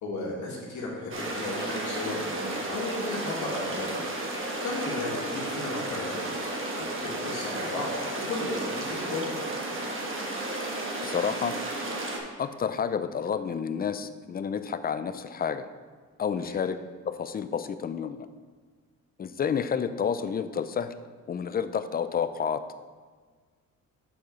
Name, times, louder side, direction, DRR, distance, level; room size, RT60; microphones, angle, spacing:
voice 1, 0.0-4.1 4.4-6.3 6.7-7.9 8.1-9.4 16.4-16.6, left 2 dB, 70° left, -4 dB, 2.0 m, -34 dB
sound 1, 1.1-12.2, right 2 dB, 45° right, 1.5 m, -33 dB
voice 2, 11.0-11.6 12.4-15.6 16.2-16.8 17.1-18.3 19.2-20.9 21.3-22.6, left 7 dB, 30° left, 11 dB, 0.4 m, -30 dB
7.0 x 4.8 x 5.3 m, 1.5 s
cardioid pair, 90°, 30 cm